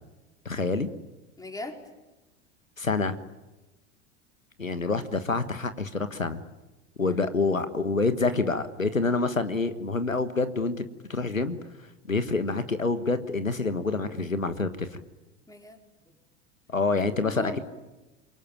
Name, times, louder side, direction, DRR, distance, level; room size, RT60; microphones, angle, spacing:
voice 1, 0.4-0.9 2.8-3.1 4.6-6.4 7.0-10.8 11.1-11.6 12.1-15.0 16.7-17.6, left 3 dB, 90° left, 12 dB, 1.5 m, -27 dB
voice 2, 1.4-1.8 7.1-7.2 15.5-15.8 16.1-16.2 17.1-17.6, left 2 dB, 10° left, 3 dB, 4.5 m, -39 dB
27.5 x 23.5 x 9.0 m, 1.1 s
figure-of-eight pair, 85°, 39 cm